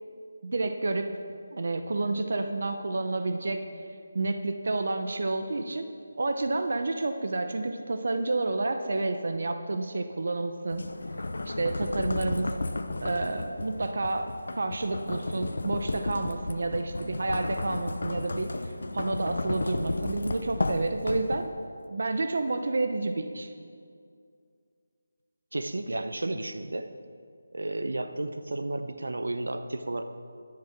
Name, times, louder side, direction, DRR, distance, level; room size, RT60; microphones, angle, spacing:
voice 1, 0.4-1.1 1.5-3.6 4.1-5.9 6.2-10.8 11.5-12.5 13.0-14.3 14.6-18.5 18.9-21.5 21.9-23.5, right 2 dB, 50° right, 7 dB, 0.7 m, -29 dB
sound 1, 10.7-21.7, left 2 dB, 65° left, 0.6 m, -33 dB
voice 2, 25.5-26.9 27.5-30.0, right 2 dB, 85° right, 9 dB, 0.8 m, -32 dB
11.0 x 9.6 x 5.8 m, 2.3 s
figure-of-eight pair, 175°, 0 cm